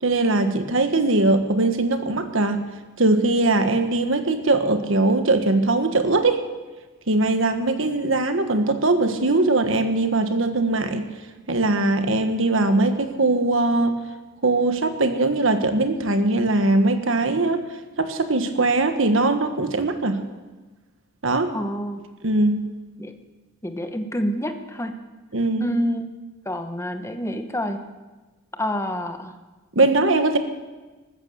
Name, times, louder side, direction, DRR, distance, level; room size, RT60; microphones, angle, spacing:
voice 1, 0.0-2.6 3.0-6.4 7.1-11.1 11.5-13.9 14.4-17.6 18.0-20.2 21.2-21.5 22.2-22.6 25.3-25.7 29.7-30.4, right 2 dB, 65° right, 8 dB, 1.4 m, -21 dB
voice 2, 21.5-22.0 23.0-23.1 23.6-25.0 25.6-26.1 26.5-27.8 28.6-29.3, equal, 15° left, 7 dB, 1.1 m, -27 dB
14.5 x 13.0 x 7.0 m, 1.2 s
head